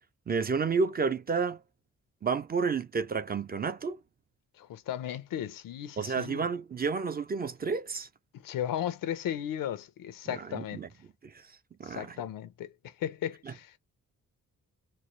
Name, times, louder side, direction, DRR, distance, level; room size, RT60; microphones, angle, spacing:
voice 1, 0.3-1.6 2.2-4.0 6.0-8.1 10.3-10.9 11.2-11.3 11.8-12.2 13.5-13.6, right 5 dB, 30° right, 0.4 m, -30 dB
voice 2, 4.6-6.5 8.3-10.8 11.8-13.8, left 10 dB, 90° left, 0.7 m, -36 dB
4.2 x 2.0 x 3.1 m
cardioid pair, 95°, 32 cm